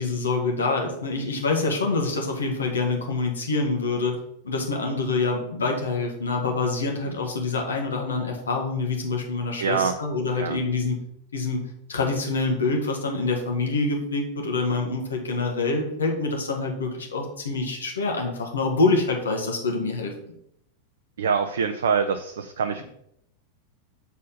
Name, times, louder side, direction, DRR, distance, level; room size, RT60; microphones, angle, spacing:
voice 1, 0.0-4.2 4.4-11.0 11.3-20.1, left 3 dB, 70° left, 1 dB, 1.7 m, -26 dB
voice 2, 9.6-9.9 10.4-10.6 21.2-22.8, right 6 dB, 65° right, 7 dB, 0.5 m, -24 dB
7.2 x 4.2 x 5.7 m, 0.74 s
figure-of-eight pair, 90°, 0 cm